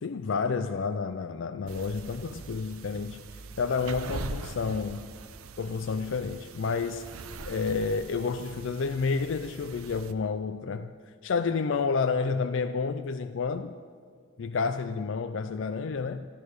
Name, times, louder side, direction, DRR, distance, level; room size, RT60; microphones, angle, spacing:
voice 1, 0.0-5.1 5.6-7.2 7.4-10.9 11.2-13.8 14.4-16.3, left 5 dB, 60° left, 0.4 m, -30 dB
sound 1, 1.7-10.1, right 3 dB, 85° right, 0.7 m, -42 dB
13.0 x 13.0 x 6.4 m
head